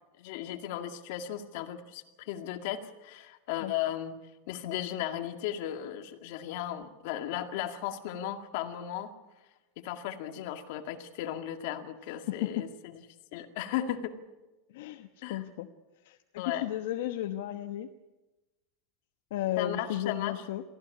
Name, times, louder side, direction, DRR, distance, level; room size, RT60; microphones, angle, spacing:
voice 1, 0.2-4.1 4.5-9.1 9.8-12.7 12.9-13.0 13.3-14.1 15.2-15.5 16.4-16.7 19.6-20.4, left 11 dB, 60° left, 6 dB, 2.1 m, -36 dB
voice 2, 12.3-12.6 14.7-15.7 16.0-17.9 19.3-20.6, left 12 dB, 75° left, 6 dB, 1.1 m, -34 dB
23.5 x 15.5 x 8.5 m, 1.1 s
supercardioid pair, 160°, 0 cm